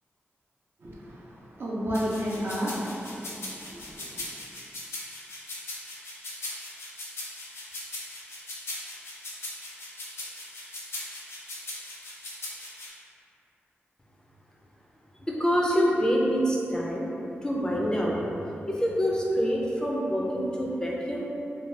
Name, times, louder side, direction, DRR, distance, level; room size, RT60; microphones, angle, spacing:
voice 1, 0.8-4.3, equal, 55° right, -6 dB, 0.6 m, -32 dB
sound 1, 1.9-12.9, left 2 dB, 70° left, 0.6 m, -39 dB
voice 2, 15.3-17.1 17.4-18.4 18.7-21.2, equal, 15° left, -4 dB, 0.4 m, -26 dB
2.6 x 2.2 x 3.2 m, 2.9 s
wide cardioid pair, 95°, 4 cm